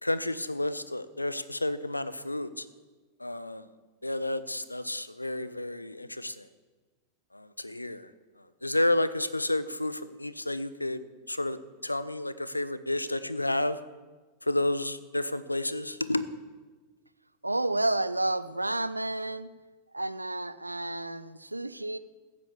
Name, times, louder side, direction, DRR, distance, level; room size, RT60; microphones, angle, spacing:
voice 1, 0.0-2.6 3.2-3.6 4.0-6.4 7.3-8.1 8.6-11.0 11.3-13.8 14.5-16.3, left 1 dB, 85° left, 15 dB, 0.6 m, -31 dB
voice 2, 17.4-19.5 19.9-22.0, right 2 dB, 85° right, 15 dB, 0.5 m, -30 dB
15.0 x 8.3 x 7.1 m, 1.3 s
figure-of-eight pair, 90°, 0 cm